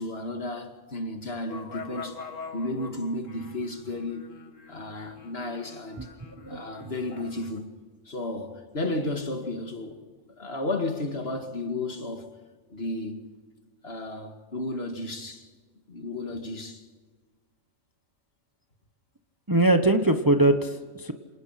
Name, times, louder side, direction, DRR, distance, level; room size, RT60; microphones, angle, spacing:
voice 1, 0.0-2.2 2.5-4.3 4.7-6.1 6.5-7.8 8.1-10.0 10.4-12.3 12.7-13.2 13.8-15.5 15.9-16.8, left 2 dB, 50° left, 2.4 m, -33 dB
sound 1, 1.5-7.6, left 5 dB, 80° left, 2.0 m, -44 dB
voice 2, 6.4-6.9 19.5-21.1, right 2 dB, 15° right, 1.1 m, -22 dB
27.5 x 19.0 x 5.9 m
omnidirectional pair, 1.3 m